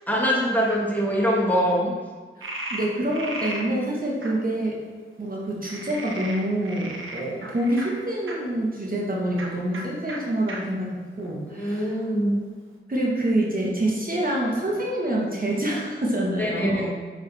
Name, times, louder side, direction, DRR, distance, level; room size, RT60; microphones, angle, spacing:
voice 1, 0.1-1.9 11.5-12.4 16.4-16.9, equal, 10° left, -4 dB, 1.5 m, -23 dB
Frog, 2.4-3.7 4.2-4.3 5.6-8.4 9.3-9.5 9.7-9.8 10.1-10.2 10.5-10.6 11.2-11.9, right 2 dB, 75° right, 0.9 m, -35 dB
voice 2, 2.7-4.8 5.2-11.9 12.9-16.9, right 1 dB, 45° right, -3 dB, 1.3 m, -26 dB
6.4 x 4.8 x 3.4 m, 1.4 s
wide cardioid pair, 60°, 21 cm